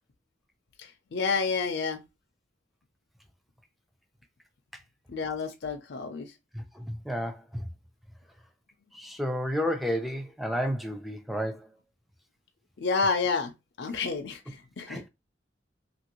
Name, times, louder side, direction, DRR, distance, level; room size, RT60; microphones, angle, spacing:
voice 1, 1.1-2.0 5.1-6.3 12.8-13.5 13.8-15.0, left 4 dB, 65° left, 0.5 m, -29 dB
voice 2, 6.5-7.7 8.9-11.7 14.9-15.1, equal, ahead, 0.4 m, -31 dB
2.9 x 2.5 x 2.9 m
head